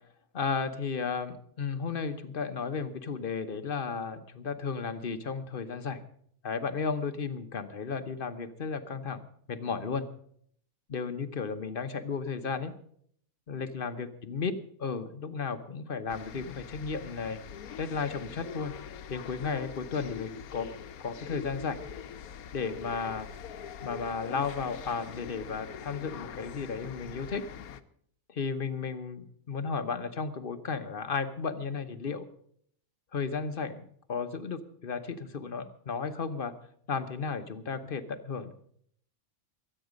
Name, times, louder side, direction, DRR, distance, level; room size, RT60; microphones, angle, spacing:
voice 1, 0.3-6.0 6.4-10.0 10.9-12.7 13.5-14.5 14.8-17.4 17.8-18.7 19.1-20.7 21.0-21.8 22.5-23.3 23.8-27.4 28.3-32.3 33.1-36.5 36.9-38.5, left 5 dB, 45° left, 9 dB, 1.0 m, -34 dB
sound 1, 16.1-27.8, left 8 dB, 90° left, 1.2 m, -43 dB
23.0 x 9.0 x 5.1 m, 0.65 s
omnidirectional pair, 1.5 m